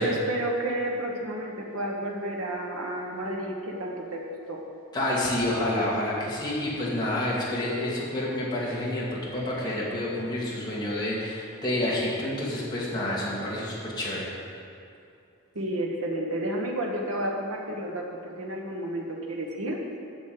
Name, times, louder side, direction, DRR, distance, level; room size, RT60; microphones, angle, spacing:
voice 1, 0.0-4.2 4.5-4.6 15.5-19.8, right 1 dB, 80° right, -1 dB, 1.3 m, -31 dB
voice 2, 4.9-14.3, left 1 dB, 20° left, -7 dB, 2.3 m, -28 dB
8.4 x 6.3 x 7.8 m, 2.5 s
head